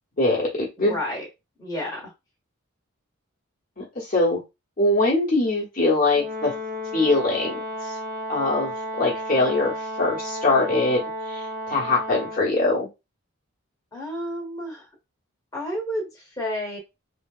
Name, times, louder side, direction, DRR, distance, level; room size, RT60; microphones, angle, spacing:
voice 1, 0.2-1.0 3.8-4.4 4.8-6.5 6.9-7.9 8.3-12.9, left 2 dB, 40° left, -4 dB, 1.0 m, -23 dB
voice 2, 0.8-1.2 1.6-2.1 13.9-14.9 15.5-16.8, equal, 15° left, -2 dB, 1.1 m, -31 dB
Brass instrument, 6.2-12.5, equal, 40° right, 0.6 m, -33 dB
3.1 x 2.7 x 2.4 m, 0.24 s
head